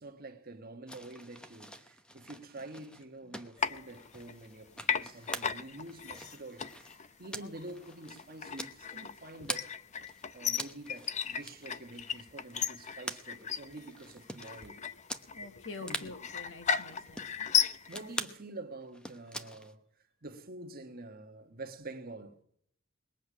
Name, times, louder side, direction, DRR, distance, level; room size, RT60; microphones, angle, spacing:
voice 1, 0.0-6.9 7.2-9.7 10.3-14.8 15.7-16.1 17.9-19.9 20.2-22.4, right 2 dB, 50° right, 1.4 m, -47 dB
sound 1, 0.9-9.7 10.0-14.7 15.1-15.3 15.5-15.6 15.8-16.1 16.7-17.4 17.9-18.4 18.8-19.7, equal, 5° left, 0.9 m, -44 dB
sound 2, 3.6-4.6 4.8-18.2, left 7 dB, 35° left, 0.6 m, -35 dB
voice 2, 15.3-17.6, left 3 dB, 70° left, 1.4 m, -47 dB
21.5 x 8.3 x 6.2 m
head